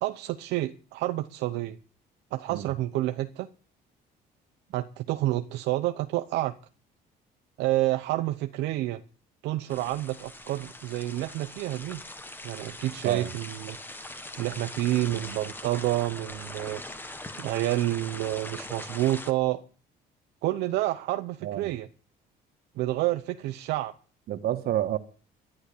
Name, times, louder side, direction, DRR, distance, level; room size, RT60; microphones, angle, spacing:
voice 1, 0.0-1.8 2.3-3.5 4.7-6.5 7.6-9.0 9.4-12.0 12.4-19.6 20.4-21.9 22.8-23.9, right 16 dB, 85° right, 0.8 m, -29 dB
sound 1, 9.7-19.3, left 2 dB, 10° left, 1.6 m, -42 dB
voice 2, 21.4-21.7 24.3-25.0, right 12 dB, 70° right, 1.5 m, -29 dB
11.5 x 10.5 x 8.4 m
cardioid pair, 110°, 17 cm